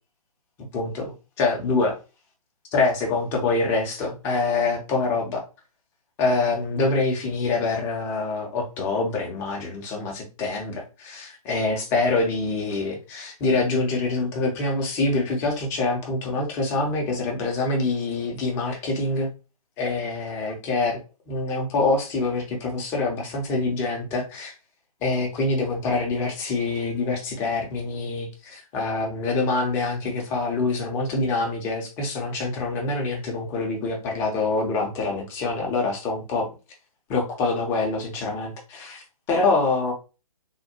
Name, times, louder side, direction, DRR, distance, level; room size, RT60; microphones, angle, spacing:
voice 1, 0.7-2.0 2.7-5.4 6.2-19.3 19.8-21.0 21.3-24.5 25.0-36.5 37.1-39.0 39.3-39.9, left 3 dB, 15° left, 1 dB, 0.5 m, -25 dB
3.4 x 2.2 x 2.8 m, 0.31 s
figure-of-eight pair, 130°, 19 cm